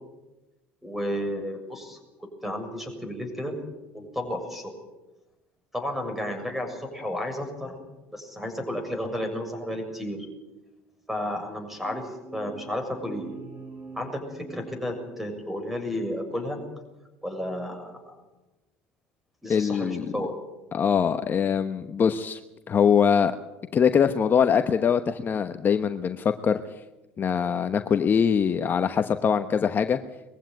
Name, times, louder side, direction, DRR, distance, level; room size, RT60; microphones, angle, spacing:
voice 1, 0.8-3.6 3.9-4.8 5.7-7.8 8.1-10.3 11.1-13.4 13.9-16.6 17.2-18.2 19.4-20.3, left 1 dB, 5° right, 6 dB, 6.7 m, -32 dB
sound 1, 11.8-15.6, right 3 dB, 25° right, 7.2 m, -44 dB
voice 2, 19.5-20.1 20.7-22.4 22.7-23.3 23.7-26.6 27.2-30.0, left 7 dB, 35° left, 9 dB, 1.0 m, -23 dB
21.5 x 15.0 x 9.4 m, 1.0 s
supercardioid pair, 85°, 6 cm